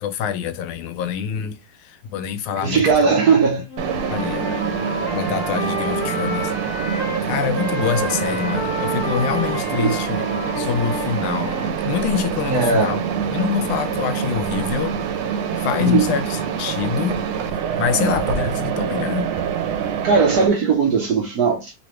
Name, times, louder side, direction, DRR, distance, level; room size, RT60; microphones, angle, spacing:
voice 1, 0.0-3.1 4.1-4.5 5.1-6.5 6.9-10.3 10.5-13.0 13.3-14.9 15.6-19.3, left 8 dB, 85° left, 1.4 m, -25 dB
voice 2, 2.6-3.7 9.8-10.0 12.5-13.0 15.8-16.1 20.0-21.7, right 5 dB, 65° right, 1.0 m, -18 dB
Wind instrument woodwind instrument, 3.7-7.2 7.5-11.8, left 1 dB, 20° left, 1.7 m, -29 dB
Mechanisms, 3.8-20.5, right 7 dB, 85° right, 1.5 m, -25 dB
3.3 x 3.1 x 3.0 m
omnidirectional pair, 2.3 m